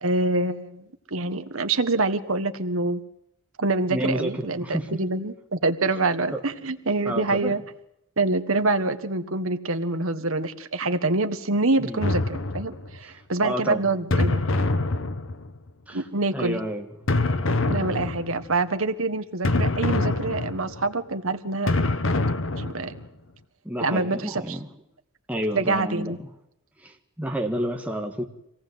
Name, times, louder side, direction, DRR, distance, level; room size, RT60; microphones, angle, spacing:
voice 1, 0.0-3.0 3.6-7.6 8.2-14.4 15.9-16.6 17.7-21.7 22.6-23.0 23.8-24.6 25.5-26.2, right 2 dB, 70° right, 1.5 m, -26 dB
voice 2, 3.9-5.0 6.3-6.4 7.1-7.6 11.8-12.1 13.4-13.8 15.9-16.1 16.3-16.9 23.6-24.7 25.3-26.3 26.8-28.2, equal, 5° right, 1.8 m, -30 dB
sound 1, 12.0-13.0 14.1-15.7 17.1-18.5 19.4-20.9 21.7-23.1, left 2 dB, 65° left, 1.1 m, -25 dB
25.5 x 18.0 x 8.0 m
head